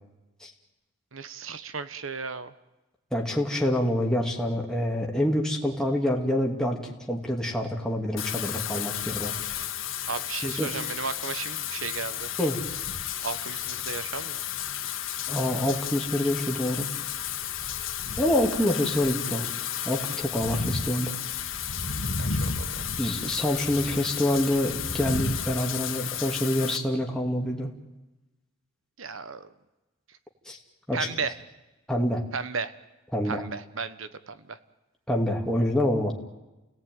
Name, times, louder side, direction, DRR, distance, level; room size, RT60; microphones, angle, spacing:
voice 1, 1.1-2.5 10.1-12.3 13.2-14.4 22.2-22.8 29.0-29.5 30.9-31.4 32.3-32.7 33.2-34.6, right 5 dB, 90° right, 13 dB, 1.3 m, -34 dB
voice 2, 3.1-6.8 7.1-9.3 10.4-10.7 12.4-12.6 15.3-16.9 18.2-19.5 19.8-21.2 23.0-27.7 30.5-30.6 30.9-31.1 31.9-32.2 33.1-33.5 35.1-36.1, left 1 dB, 5° left, -1 dB, 2.7 m, -26 dB
Wind / Rain, 8.2-26.8, left 7 dB, 85° left, 2.1 m, -32 dB
29.5 x 18.0 x 9.4 m, 1.1 s
head